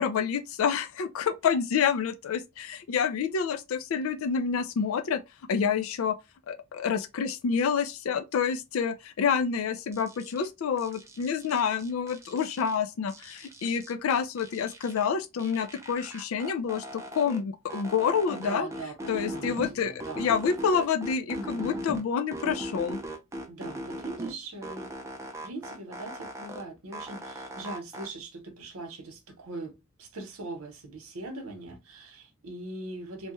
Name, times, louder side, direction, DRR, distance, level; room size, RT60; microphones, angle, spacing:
voice 1, 0.0-5.2 5.5-6.2 6.5-18.7 19.1-23.0, left 6 dB, 75° left, 0.4 m, -28 dB
sound 1, 9.9-10.5 10.8-12.8 13.1-15.1 15.4-17.4 17.7-19.7 20.0-22.0 22.3-24.3 24.6-26.6 26.9-28.1, equal, 15° right, 0.4 m, -39 dB
voice 2, 18.3-20.3 21.3-21.9 23.5-24.9 25.4-33.3, right 2 dB, 80° right, 0.9 m, -41 dB
3.1 x 2.2 x 3.0 m
head